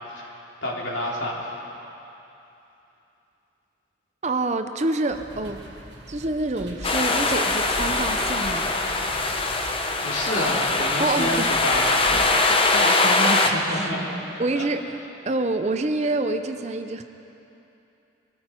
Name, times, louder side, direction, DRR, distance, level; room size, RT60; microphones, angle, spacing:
voice 1, 0.1-1.6 10.0-12.1 13.5-14.0, left 1 dB, 75° left, -4 dB, 3.0 m, -29 dB
voice 2, 4.2-5.6 6.1-8.7 11.0-11.5 12.1-13.9 14.4-17.0, right 2 dB, 35° right, 8 dB, 0.6 m, -27 dB
sound 1, 5.1-12.4, equal, 60° right, 2.4 m, -41 dB
sound 2, 6.8-13.5, left 3 dB, 30° left, 0.8 m, -22 dB
23.0 x 14.0 x 4.5 m, 2.9 s
head